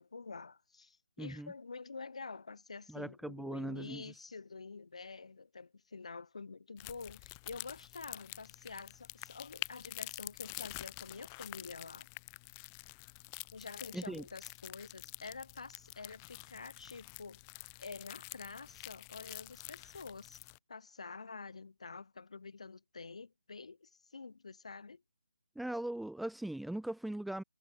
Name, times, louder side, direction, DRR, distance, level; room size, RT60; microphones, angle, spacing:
voice 1, 0.0-12.1 13.5-17.4 17.8-20.4 20.7-25.0, left 4 dB, 55° left, 2.0 m, -48 dB
voice 2, 1.2-1.5 2.9-4.0 13.9-14.2 25.6-27.4, right 1 dB, ahead, 0.4 m, -39 dB
sound 1, 6.8-20.6, left 29 dB, 15° left, 2.0 m, -48 dB
figure-of-eight pair, 155°, 4 cm